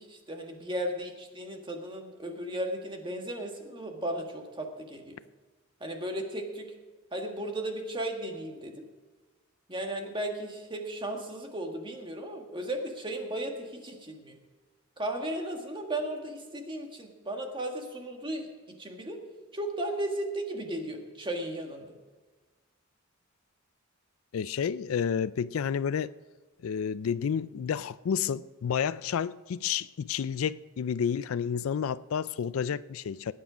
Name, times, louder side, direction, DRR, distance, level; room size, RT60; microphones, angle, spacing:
voice 1, 0.0-5.2 5.8-6.7 7.1-8.7 9.7-14.4 15.0-18.5 18.8-19.2 19.5-21.9, right 1 dB, 25° right, 1.7 m, -35 dB
voice 2, 24.3-26.1 26.6-33.3, left 7 dB, 75° left, 0.4 m, -30 dB
17.5 x 9.6 x 5.0 m
head